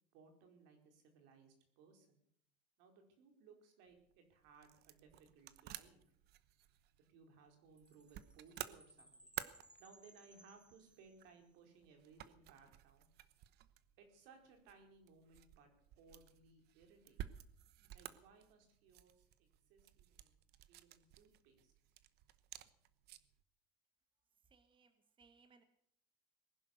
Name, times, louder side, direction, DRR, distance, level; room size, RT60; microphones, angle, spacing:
voice 1, 0.1-2.2 2.8-6.0 7.1-9.1 9.8-13.1 14.0-17.2 17.9-20.3 20.7-21.7, right 5 dB, 85° right, 4 dB, 4.5 m, -64 dB
sound 1, 3.9-23.4, right 13 dB, 65° right, 1.0 m, -54 dB
Chime, 7.8-11.5, right 1 dB, 5° right, 1.8 m, -66 dB
voice 2, 24.4-25.6, right 4 dB, 30° right, 9 dB, 1.7 m, -68 dB
20.0 x 11.0 x 6.6 m, 0.67 s
cardioid pair, 120°, 18 cm